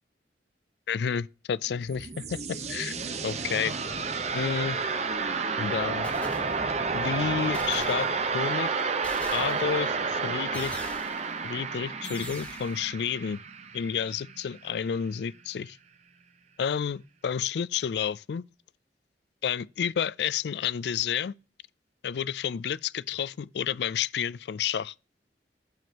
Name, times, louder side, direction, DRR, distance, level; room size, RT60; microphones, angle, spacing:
voice 1, 0.9-3.8 4.3-4.8 5.6-6.1 6.9-8.1 8.3-8.7 9.3-10.8 11.4-13.4 13.7-15.8 16.6-18.4 19.4-21.3 22.0-24.9, left 7 dB, 70° left, 0.3 m, -30 dB
sound 1, 1.7-14.5, right 4 dB, 40° right, 0.8 m, -31 dB
sound 2, 5.1-5.5 6.0-7.0 7.5-8.5 9.0-9.9 10.5-11.4 12.0-12.8, left 1 dB, 10° left, 1.9 m, -42 dB
9.1 x 7.1 x 2.8 m
head